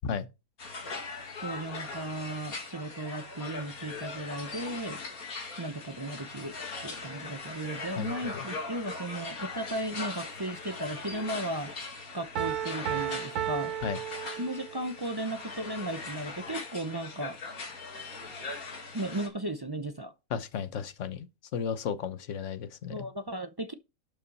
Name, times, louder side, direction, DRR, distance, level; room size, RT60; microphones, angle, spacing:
sound 1, 0.6-19.3, left 3 dB, 75° left, 2.4 m, -40 dB
voice 1, 1.4-5.0 5.6-11.7 12.1-13.7 14.4-17.4 18.9-20.1 22.9-23.7, right 1 dB, 35° right, 0.4 m, -36 dB
voice 2, 8.0-8.4 13.8-14.0 20.3-23.1, left 7 dB, 60° left, 1.2 m, -34 dB
Piano, 12.4-14.9, right 11 dB, 85° right, 1.3 m, -34 dB
11.5 x 5.7 x 4.1 m
omnidirectional pair, 1.5 m